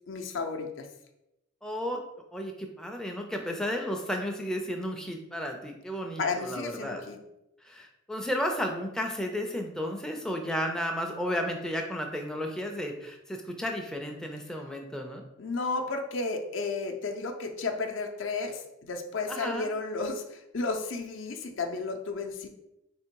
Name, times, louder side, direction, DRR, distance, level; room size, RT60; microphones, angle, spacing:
voice 1, 0.1-0.9 6.2-7.2 15.4-22.5, left 3 dB, 65° left, 4 dB, 0.6 m, -33 dB
voice 2, 1.6-2.0 2.3-7.0 7.6-15.2 19.3-19.7, equal, 5° left, 2 dB, 0.4 m, -33 dB
3.5 x 2.9 x 4.5 m, 0.88 s
head